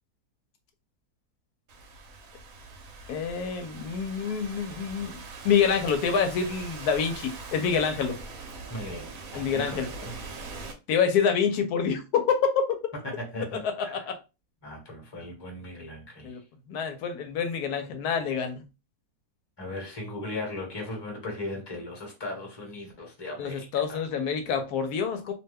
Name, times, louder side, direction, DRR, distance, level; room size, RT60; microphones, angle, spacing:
Thunderstorm / Rain, 1.7-10.7, right 3 dB, 70° right, 1.1 m, -42 dB
voice 1, 3.1-8.2 9.3-9.9 10.9-12.4 13.5-14.2 16.2-16.4 16.7-18.6 23.4-25.3, left 6 dB, 80° left, 1.1 m, -27 dB
voice 2, 8.7-9.0 9.3-10.1 13.0-14.0 14.6-16.4 19.6-24.0, left 2 dB, 20° left, 1.0 m, -37 dB
2.7 x 2.2 x 3.3 m
omnidirectional pair, 1.6 m